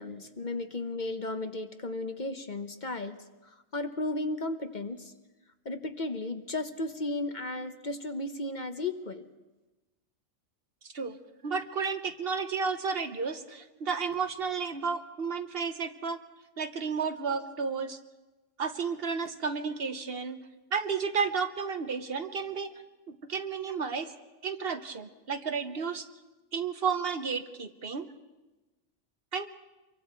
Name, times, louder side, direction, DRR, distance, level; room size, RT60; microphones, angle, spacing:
voice 1, 0.0-3.2 3.4-5.1 5.6-9.3, left 2 dB, 40° left, 8 dB, 1.0 m, -34 dB
voice 2, 11.4-16.2 16.6-18.0 18.6-20.4 20.7-22.7 23.1-24.1 24.4-26.1 26.5-28.1 29.3-29.5, right 5 dB, 55° right, 9 dB, 1.1 m, -32 dB
26.0 x 23.0 x 4.5 m, 1.1 s
omnidirectional pair, 1.2 m